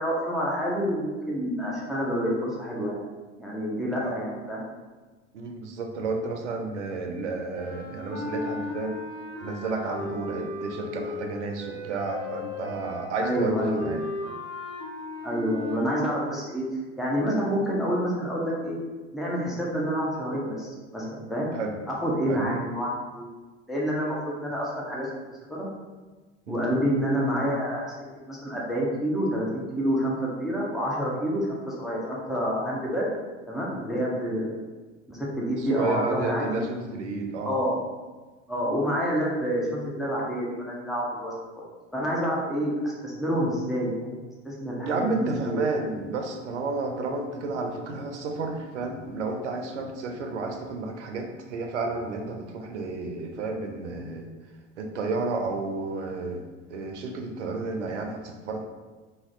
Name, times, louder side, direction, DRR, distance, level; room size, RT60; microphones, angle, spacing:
voice 1, 0.0-3.0 3.4-4.6 13.2-14.0 15.2-16.7 17.0-18.8 19.1-21.5 21.9-23.3 23.7-25.1 25.5-25.7 26.5-27.9 28.3-33.0 33.5-34.6 35.1-36.6 37.4-37.8 38.5-41.6 41.9-44.1 44.4-45.6, equal, ahead, -5 dB, 0.3 m, -28 dB
voice 2, 5.3-9.0 9.4-14.0 21.5-21.8 22.3-22.5 26.5-26.7 35.6-37.5 44.9-54.3 54.8-56.4 56.7-58.6, right 3 dB, 70° right, 4 dB, 0.5 m, -31 dB
sound 1, 7.5-16.2, left 2 dB, 60° left, 1.0 m, -36 dB
2.6 x 2.4 x 3.1 m, 1.3 s
figure-of-eight pair, 75°, 37 cm